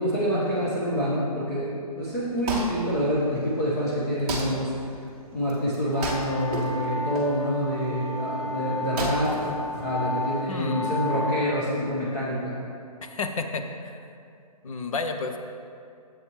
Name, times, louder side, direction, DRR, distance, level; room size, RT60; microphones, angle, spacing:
voice 1, 0.0-5.0 5.3-9.4 9.8-12.6, equal, 30° left, -9 dB, 1.4 m, -27 dB
Wood, 2.0-10.4, right 2 dB, 15° right, 0.9 m, -35 dB
sound 1, 5.9-11.4, left 1 dB, 10° left, 1.7 m, -33 dB
voice 2, 10.5-11.0 13.0-14.0 14.6-15.4, left 3 dB, 60° left, 6 dB, 0.8 m, -31 dB
10.5 x 7.9 x 3.2 m, 2.4 s
hypercardioid pair, 170°, 20 cm